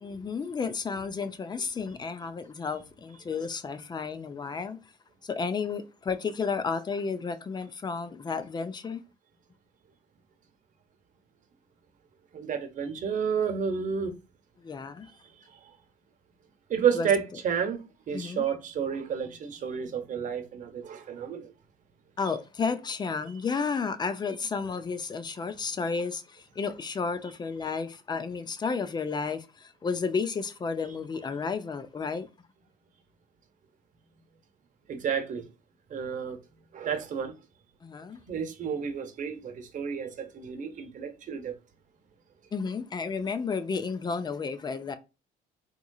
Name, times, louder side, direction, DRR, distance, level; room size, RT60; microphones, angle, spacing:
voice 1, 0.0-4.8 5.2-9.0 14.6-15.1 16.9-17.1 18.1-18.5 22.2-32.3 37.8-38.2 42.5-45.0, left 5 dB, 25° left, 0.5 m, -32 dB
voice 2, 12.3-14.1 15.5-15.6 16.7-21.5 34.9-35.5 35.9-36.4 36.7-37.4 38.3-41.5, right 7 dB, 50° right, 0.9 m, -31 dB
3.7 x 3.0 x 2.3 m
cardioid pair, 110°, 17 cm